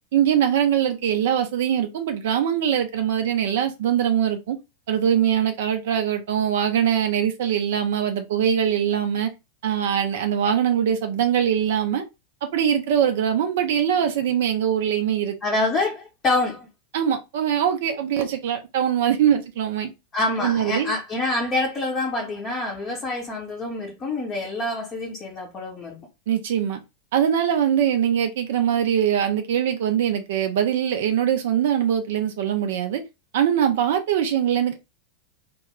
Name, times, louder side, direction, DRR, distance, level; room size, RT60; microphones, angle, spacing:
voice 1, 0.1-4.6 4.9-9.3 9.6-12.0 12.4-15.4 16.9-19.9 20.4-20.9 26.3-26.8 27.1-33.0 33.3-34.8, right 9 dB, 55° right, 0.4 m, -22 dB
voice 2, 15.4-16.7 20.1-26.1, left 2 dB, 25° left, 0.6 m, -26 dB
2.2 x 2.1 x 3.4 m
figure-of-eight pair, 90°, 0 cm